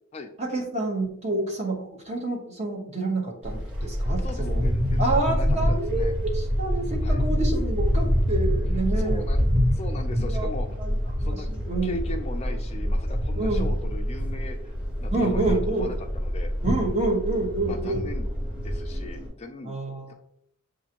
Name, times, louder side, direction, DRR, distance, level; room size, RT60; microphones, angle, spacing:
voice 1, 0.4-4.6 5.0-9.2 10.2-10.5 10.8-12.0 13.4-13.7 15.1-15.9 16.6-18.0 19.6-20.1, right 2 dB, 30° right, 1 dB, 0.9 m, -28 dB
sound 1, 3.4-19.3, equal, 55° right, 1.5 m, -26 dB
voice 2, 4.2-6.1 7.0-7.2 8.9-10.8 11.2-11.5 11.8-14.7 15.0-16.5 17.7-18.3 18.6-19.8 20.1-20.2, left 2 dB, 30° left, 5 dB, 0.4 m, -38 dB
6.9 x 2.5 x 2.8 m, 0.70 s
head